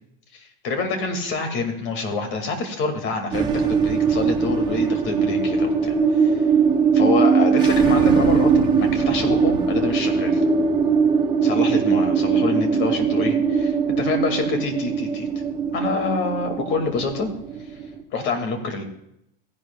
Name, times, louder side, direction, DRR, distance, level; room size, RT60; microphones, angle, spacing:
voice 1, 0.3-6.4 6.9-10.4 11.4-15.3 15.7-17.3 18.1-18.8, left 3 dB, 40° left, 5 dB, 2.1 m, -27 dB
sound 1, 3.3-18.0, right 5 dB, 15° right, 1.0 m, -20 dB
16.5 x 10.5 x 2.3 m, 0.78 s
supercardioid pair, 155°, 30 cm